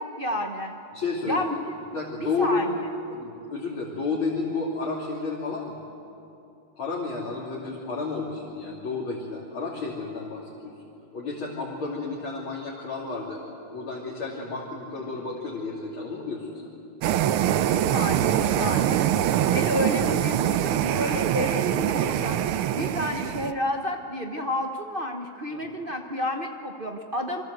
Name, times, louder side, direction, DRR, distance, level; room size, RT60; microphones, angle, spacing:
voice 1, 0.0-0.8 1.3-1.6 2.2-2.8 17.7-19.0 19.4-22.4 22.7-27.4, equal, 35° right, 3 dB, 1.0 m, -30 dB
voice 2, 0.9-1.4 1.9-2.6 3.1-5.8 6.7-10.8 11.1-13.4 13.7-16.6 18.0-18.1 25.5-25.6, left 4 dB, 75° left, -4 dB, 3.6 m, -31 dB
sound 1, 17.0-23.5, right 11 dB, 85° right, 1.7 m, -24 dB
28.0 x 23.5 x 7.9 m, 2.7 s
omnidirectional pair, 2.3 m